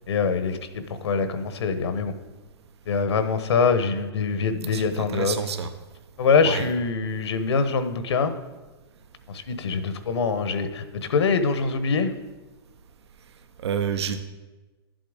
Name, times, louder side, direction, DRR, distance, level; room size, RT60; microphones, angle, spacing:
voice 1, 0.1-2.1 2.9-5.4 6.2-8.3 9.3-12.1, left 5 dB, 85° left, 10 dB, 1.2 m, -24 dB
voice 2, 4.7-5.7 6.4-6.7 13.6-14.2, right 7 dB, 85° right, 9 dB, 0.8 m, -28 dB
11.0 x 7.8 x 5.1 m, 1.2 s
hypercardioid pair, 150°, 14 cm